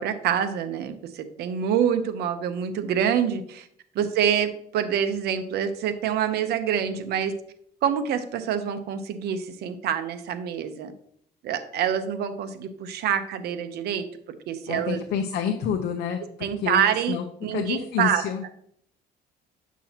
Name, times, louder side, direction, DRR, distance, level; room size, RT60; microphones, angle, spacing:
voice 1, 0.0-3.7 3.9-7.3 7.8-10.9 11.4-14.0 14.5-15.0 16.4-17.2 17.4-18.2, right 8 dB, 75° right, 9 dB, 0.9 m, -26 dB
voice 2, 14.7-17.3 17.5-18.4, left 7 dB, 75° left, 4 dB, 0.8 m, -28 dB
9.2 x 6.1 x 2.9 m, 0.67 s
cardioid pair, 110°, 17 cm